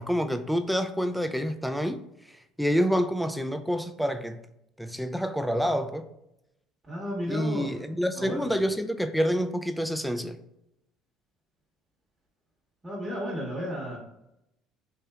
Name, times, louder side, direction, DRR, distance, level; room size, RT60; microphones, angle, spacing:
voice 1, 0.0-2.0 2.6-4.4 4.8-6.1 7.3-10.4, equal, ahead, 0.3 m, -27 dB
voice 2, 6.9-7.7 8.1-8.5 12.8-14.0, equal, 15° right, 1.0 m, -33 dB
3.3 x 2.7 x 2.3 m
supercardioid pair, 80°, 0 cm